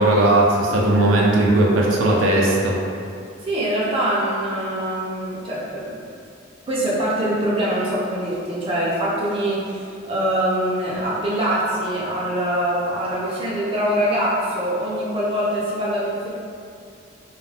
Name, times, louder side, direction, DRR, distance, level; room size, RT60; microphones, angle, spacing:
voice 1, 0.0-2.8, right 1 dB, 90° right, -3 dB, 0.4 m, -17 dB
voice 2, 3.4-6.0 6.6-16.3, right 1 dB, 30° right, -7 dB, 0.5 m, -23 dB
2.3 x 2.1 x 3.2 m, 2.4 s
head